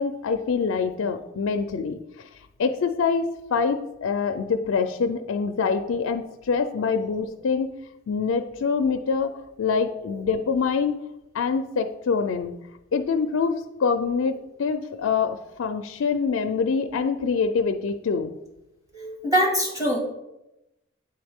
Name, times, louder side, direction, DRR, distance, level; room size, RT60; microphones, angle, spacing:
voice 1, 0.0-2.3 2.6-7.7 8.1-10.9 11.3-12.5 12.9-18.3, left 5 dB, 85° left, 7 dB, 0.4 m, -25 dB
voice 2, 18.9-20.0, equal, 15° right, 0 dB, 1.3 m, -23 dB
8.9 x 3.9 x 3.5 m, 0.93 s
head